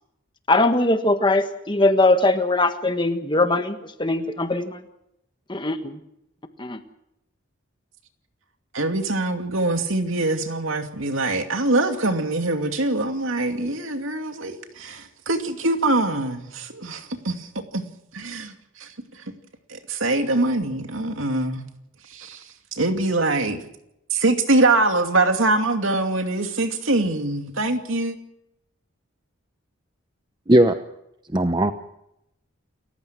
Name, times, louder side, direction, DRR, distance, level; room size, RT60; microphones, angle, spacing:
voice 1, 0.5-4.8 5.5-6.0 6.6-6.8, left 2 dB, 20° left, 1.5 m, -21 dB
voice 2, 8.7-17.8 18.1-19.3 19.7-21.6 22.0-23.6 24.1-28.2, right 2 dB, 70° right, 2.5 m, -24 dB
voice 3, 31.3-31.7, right 1 dB, 20° right, 0.8 m, -16 dB
29.0 x 15.0 x 6.2 m
head